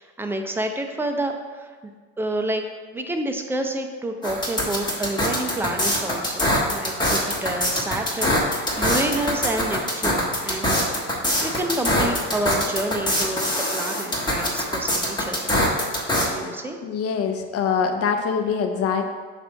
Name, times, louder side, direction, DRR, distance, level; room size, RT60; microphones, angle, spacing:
voice 1, 0.0-1.9 2.2-2.6 2.9-10.9 11.4-15.6 16.2-16.8, right 1 dB, 5° right, 4 dB, 0.5 m, -29 dB
sound 1, 4.2-16.3, left 1 dB, 10° left, 1.3 m, -23 dB
voice 2, 16.8-19.0, left 6 dB, 40° left, 5 dB, 0.7 m, -24 dB
6.6 x 2.7 x 5.6 m, 1.5 s
supercardioid pair, 100°, 35 cm